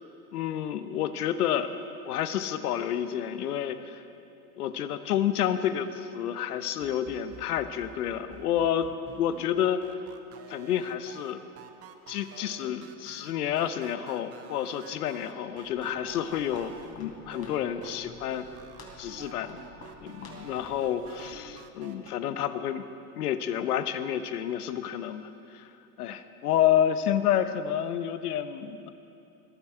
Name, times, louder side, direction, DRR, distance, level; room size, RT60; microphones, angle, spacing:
voice 1, 0.3-1.8 2.1-4.0 4.6-8.9 9.2-9.8 10.5-11.4 12.1-18.5 19.0-19.6 20.0-22.8 23.2-25.7 26.0-28.9, left 10 dB, 85° left, 11 dB, 0.9 m, -29 dB
sound 1, 6.8-16.9 17.3-17.9 18.3-22.1, right 8 dB, 30° right, 1.0 m, -49 dB
Walk footsteps, 15.6-21.7, left 3 dB, 30° left, 3.2 m, -50 dB
20.5 x 12.0 x 4.5 m, 2.7 s
hypercardioid pair, 110°, 45 cm